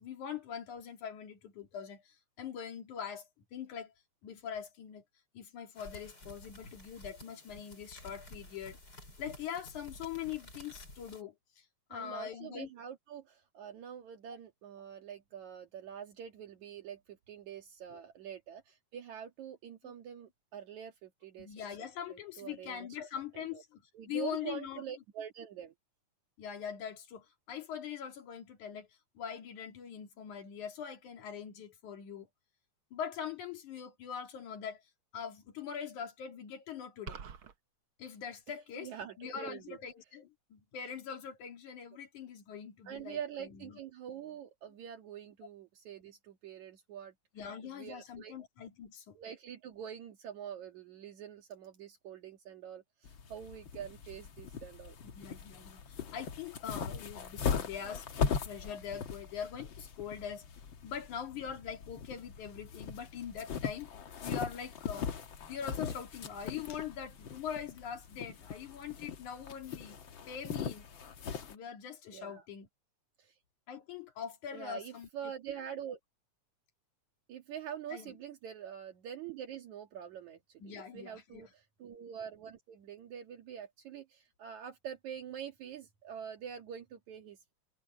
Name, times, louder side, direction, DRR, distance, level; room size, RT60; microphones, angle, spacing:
voice 1, 0.0-3.9 4.2-5.0 5.3-8.8 9.2-12.7 17.9-18.0 19.8-19.9 21.4-23.8 24.1-24.9 26.4-32.3 32.9-34.8 35.1-37.2 38.0-38.9 39.2-43.8 47.3-49.2 55.0-60.5 60.8-63.9 64.2-65.1 65.5-70.0 70.3-70.9 71.5-72.7 73.7-75.3 77.9-78.2 80.6-81.5, left 8 dB, 80° left, 3.8 m, -43 dB
sound 1, 5.7-11.2, left 1 dB, 30° left, 7.7 m, -52 dB
voice 2, 11.9-21.5 22.1-22.9 23.3-23.6 23.9-25.7 38.5-39.8 42.9-47.1 47.6-48.3 49.1-55.0 72.1-72.4 73.2-73.4 74.5-76.0 77.3-87.5, right 9 dB, 70° right, 3.1 m, -45 dB
sound 2, 37.1-37.5, right 7 dB, 55° right, 1.8 m, -44 dB
sound 3, 53.0-71.5, left 6 dB, 50° left, 1.8 m, -40 dB
omnidirectional pair, 3.4 m